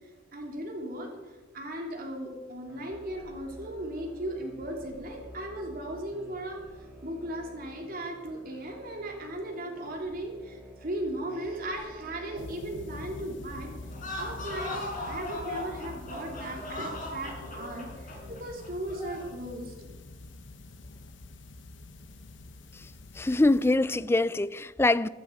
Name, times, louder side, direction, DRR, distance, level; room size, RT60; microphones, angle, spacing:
voice 1, 0.0-6.6 7.0-13.7 14.2-19.9, right 1 dB, 50° right, 3.1 m, -37 dB
sound 1, 2.7-18.3, equal, 10° right, 4.8 m, -50 dB
sound 2, 12.3-23.7, left 2 dB, 70° left, 0.9 m, -46 dB
sound 3, 13.9-19.3, left 1 dB, 45° left, 4.7 m, -38 dB
voice 2, 23.2-25.1, left 2 dB, 15° left, 0.3 m, -24 dB
14.5 x 13.5 x 5.3 m
head